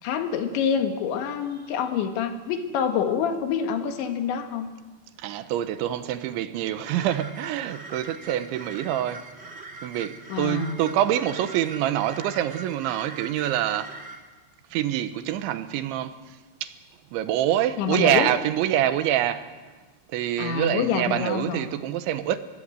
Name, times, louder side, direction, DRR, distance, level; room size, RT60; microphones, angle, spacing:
voice 1, 0.0-4.7 10.3-10.8 17.8-18.3 20.4-21.8, left 7 dB, 75° left, 3.9 m, -27 dB
voice 2, 5.2-9.2 9.8-13.9 14.7-16.1 16.6-16.7 17.1-19.5 20.1-22.4, right 11 dB, 85° right, 3.4 m, -25 dB
sound 1, 6.8-14.2, right 3 dB, 45° right, 0.8 m, -42 dB
25.5 x 21.0 x 7.9 m
omnidirectional pair, 5.3 m